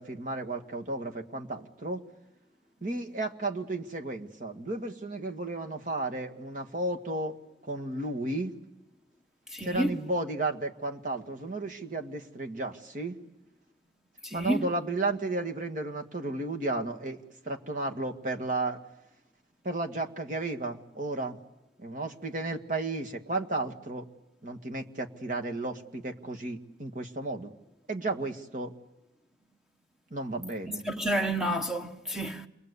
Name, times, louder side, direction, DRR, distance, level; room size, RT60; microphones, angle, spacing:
voice 1, 0.0-2.0 2.8-7.4 7.6-8.5 9.6-13.2 14.3-18.8 19.6-21.4 21.8-24.1 24.4-27.5 27.9-28.7 30.1-30.8, right 2 dB, 50° right, 1.9 m, -33 dB
voice 2, 9.5-10.0 14.2-14.7 30.8-32.5, right 1 dB, 5° right, 1.4 m, -30 dB
28.5 x 23.0 x 8.3 m
head